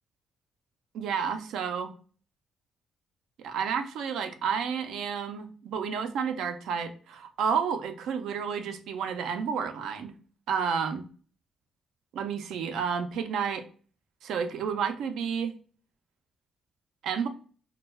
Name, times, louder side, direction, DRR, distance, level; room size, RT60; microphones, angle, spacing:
voice 1, 0.9-1.9 3.4-10.1 10.5-11.1 12.1-13.6 14.2-15.5 17.0-17.3, right 6 dB, 80° right, 8 dB, 0.4 m, -31 dB
2.2 x 2.1 x 3.1 m, 0.41 s
cardioid pair, 90°, 0 cm